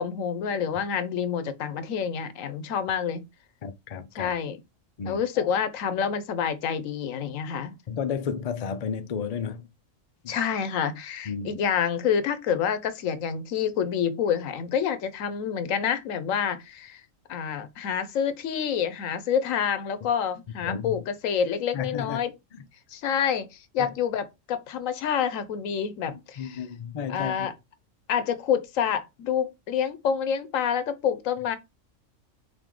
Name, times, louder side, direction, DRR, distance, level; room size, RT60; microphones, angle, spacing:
voice 1, 0.0-3.2 4.2-4.6 5.0-7.8 10.3-17.0 17.3-22.3 22.9-26.6 27.1-27.5 28.1-31.6, left 8 dB, 85° left, 1.1 m, -28 dB
voice 2, 3.6-4.3 5.0-5.5 7.9-9.7 10.2-10.4 11.3-11.6 20.6-21.0 21.7-22.2 23.8-23.9 26.1-27.5, left 6 dB, 55° left, 0.4 m, -33 dB
5.2 x 2.7 x 3.7 m
omnidirectional pair, 1.4 m